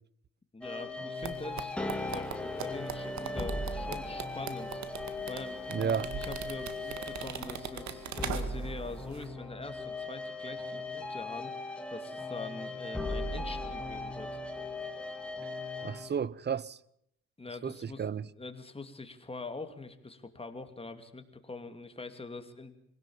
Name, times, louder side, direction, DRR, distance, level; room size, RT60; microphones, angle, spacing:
voice 1, 0.5-1.8 2.0-4.8 5.3-5.6 6.2-11.5 11.9-14.4 17.4-18.0 18.3-22.7, left 3 dB, 20° left, 2.6 m, -44 dB
sound 1, 0.6-16.1, left 2 dB, 5° left, 3.0 m, -38 dB
sound 2, 1.2-8.8 9.1-9.2, right 8 dB, 65° right, 2.1 m, -40 dB
voice 2, 5.7-6.1 15.8-16.8 17.6-18.3, right 7 dB, 35° right, 0.7 m, -33 dB
24.5 x 17.5 x 7.2 m
cardioid pair, 90°, 30 cm